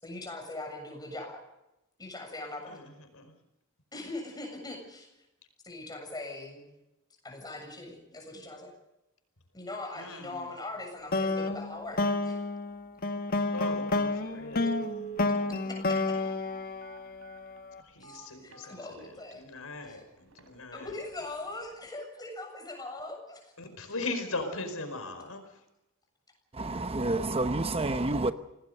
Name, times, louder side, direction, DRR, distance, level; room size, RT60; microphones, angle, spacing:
voice 1, 0.0-1.4 2.0-2.8 3.9-5.1 5.6-6.7 7.2-8.7 9.5-12.4 14.6-14.7 15.3-16.2 18.0-19.4 19.9-20.0 20.7-23.5, left 2 dB, 20° left, 7.4 m, -41 dB
voice 2, 2.7-3.3 9.9-10.5 13.5-14.9 17.8-20.9 23.6-25.6, left 2 dB, 90° left, 5.0 m, -39 dB
sound 1, 11.1-17.5, left 3 dB, 45° left, 1.4 m, -30 dB
Telephone, 13.7-13.8 14.5-19.3 19.9-20.0 20.3-20.5 20.9-21.2 21.5-21.6, right 8 dB, 75° right, 4.0 m, -45 dB
voice 3, 26.5-28.3, right 2 dB, 30° right, 0.9 m, -29 dB
27.0 x 19.0 x 6.7 m
head